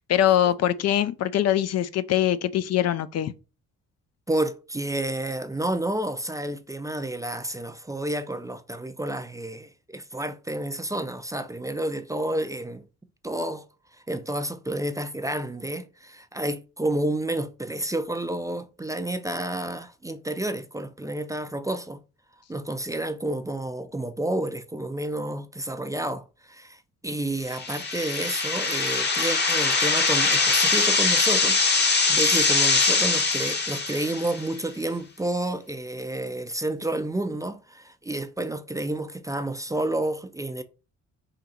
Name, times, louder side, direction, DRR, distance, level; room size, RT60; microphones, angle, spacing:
voice 1, 0.0-3.3, left 11 dB, 55° left, 0.4 m, -23 dB
voice 2, 4.3-12.8 13.2-13.6 14.1-22.0 22.5-40.6, right 1 dB, 10° right, 0.4 m, -30 dB
sound 1, 27.5-34.5, left 4 dB, 35° left, 1.0 m, -22 dB
3.8 x 2.8 x 4.2 m
cardioid pair, 90°, 30 cm